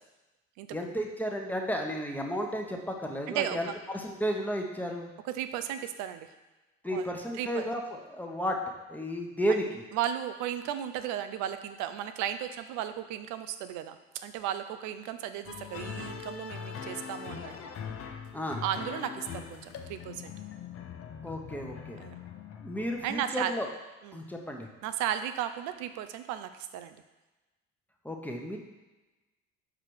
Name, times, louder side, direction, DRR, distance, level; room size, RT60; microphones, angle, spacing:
voice 1, 0.7-5.1 6.8-8.6 8.9-9.8 18.3-18.6 21.2-22.0 22.6-23.7 24.1-24.7 28.0-28.6, equal, 5° left, 1 dB, 1.0 m, -33 dB
voice 2, 3.3-3.7 5.2-6.3 6.9-7.1 7.4-7.7 9.9-17.5 18.6-20.3 22.0-22.2 23.0-23.5 24.0-24.2 24.8-27.0, right 10 dB, 75° right, 10 dB, 0.6 m, -35 dB
sound 1, 15.4-23.2, left 7 dB, 50° left, 0.7 m, -42 dB
5.0 x 4.9 x 4.7 m, 1.1 s
supercardioid pair, 70°, 30 cm